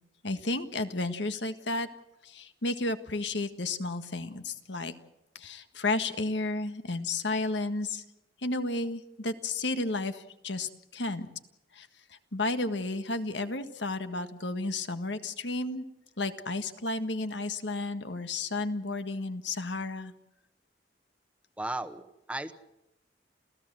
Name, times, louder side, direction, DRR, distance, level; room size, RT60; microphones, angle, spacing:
voice 1, 0.2-1.9 2.2-4.9 5.3-8.0 8.4-11.3 11.7-11.9 12.3-15.8 16.2-20.1, left 2 dB, 85° left, 9 dB, 1.7 m, -32 dB
voice 2, 21.6-22.5, right 1 dB, 5° right, 10 dB, 1.1 m, -35 dB
28.5 x 15.5 x 7.6 m, 0.88 s
head